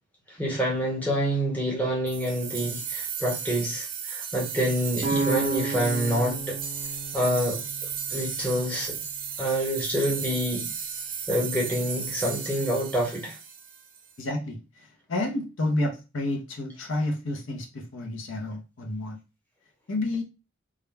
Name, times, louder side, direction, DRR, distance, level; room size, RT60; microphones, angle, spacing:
voice 1, 0.3-6.6 7.1-7.6 8.1-9.0 9.4-10.7 11.3-13.4, equal, 10° left, 0.8 m, -27 dB
sound 1, 2.1-14.1, right 6 dB, 45° right, 0.5 m, -35 dB
sound 2, 5.0-8.8, right 3 dB, 70° left, 1.3 m, -32 dB
voice 2, 14.2-19.2 19.9-20.2, left 2 dB, 90° left, 0.6 m, -30 dB
2.3 x 2.1 x 3.2 m
head